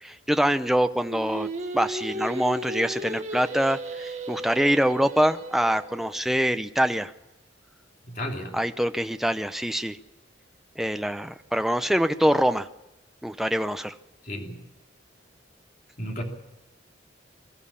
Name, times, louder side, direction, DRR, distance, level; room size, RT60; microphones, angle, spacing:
voice 1, 0.0-1.5 1.7-7.1 8.5-10.0 10.8-12.7 13.2-13.9, equal, ahead, 9 dB, 0.7 m, -24 dB
Singing, 1.0-6.2, right 1 dB, 40° right, 1.7 m, -35 dB
voice 2, 8.0-8.6 14.2-14.6 16.0-16.2, equal, 45° left, 1 dB, 3.1 m, -33 dB
23.5 x 13.5 x 8.6 m, 0.96 s
head